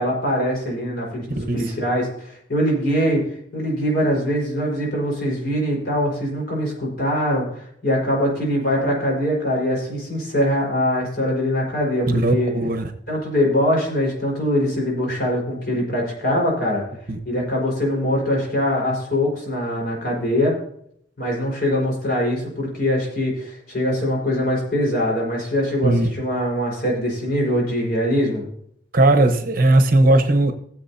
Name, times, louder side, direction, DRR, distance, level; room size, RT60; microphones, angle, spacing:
voice 1, 0.0-3.2 3.5-12.5 13.1-16.8 17.2-20.6 21.2-28.5, equal, 60° left, -2 dB, 4.8 m, -22 dB
voice 2, 12.1-12.9 17.1-17.2 25.8-26.1 28.9-30.5, right 2 dB, 55° right, 6 dB, 1.1 m, -17 dB
19.0 x 7.6 x 2.8 m, 0.69 s
head